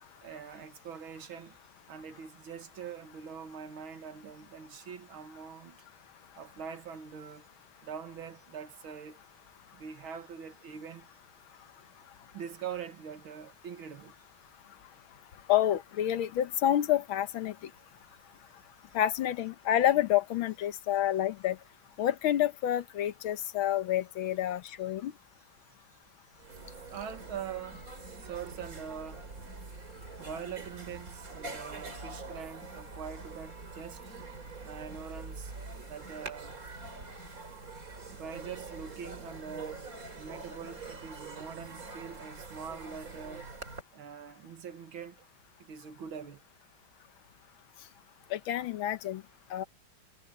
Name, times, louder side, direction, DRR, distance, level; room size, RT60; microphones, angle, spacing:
voice 1, 0.2-1.6 1.9-5.8 6.4-7.5 7.8-9.2 9.7-11.1 12.3-14.2 26.9-27.9 28.2-29.3 30.2-34.0 34.6-35.5 35.9-36.6 38.1-39.9 40.2-43.5 43.9-45.2 45.6-46.4, right 7 dB, 75° right, 2.2 m, -43 dB
voice 2, 15.5-17.7 18.9-21.6 22.0-25.1 48.3-49.2 49.5-49.6, left 12 dB, 80° left, 1.7 m, -28 dB
sound 1, 26.1-26.2 26.3-43.8, right 3 dB, 40° right, 3.5 m, -44 dB
omnidirectional pair, 2.2 m